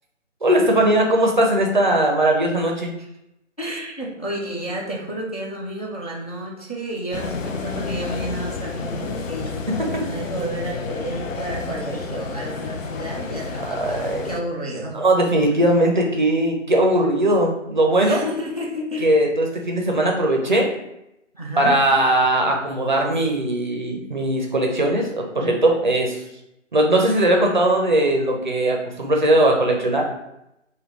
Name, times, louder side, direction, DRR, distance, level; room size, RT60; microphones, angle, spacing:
voice 1, 0.4-2.9 9.7-10.0 13.6-14.3 14.9-18.2 19.0-20.7 21.6-26.2 26.7-30.1, right 1 dB, 40° right, 1 dB, 0.5 m, -19 dB
voice 2, 3.6-15.0 18.0-19.1 21.3-21.8, right 1 dB, 35° left, -3 dB, 0.4 m, -31 dB
sound 1, 7.1-14.4, left 4 dB, 90° left, 0.5 m, -30 dB
3.5 x 2.2 x 3.0 m, 0.86 s
figure-of-eight pair, 155°, 38 cm